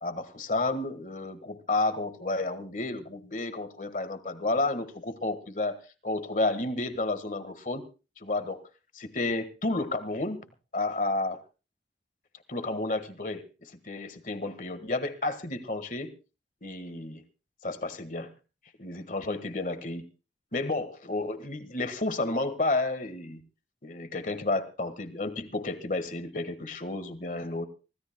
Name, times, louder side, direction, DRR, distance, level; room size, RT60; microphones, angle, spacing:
voice 1, 0.0-5.8 6.0-7.9 8.2-8.6 8.9-10.5 10.7-11.4 12.5-16.1 16.6-17.2 17.6-18.3 18.8-20.1 20.5-23.4 23.8-27.7, left 2 dB, 45° left, 11 dB, 1.5 m, -31 dB
25.5 x 16.5 x 2.2 m, 0.33 s
head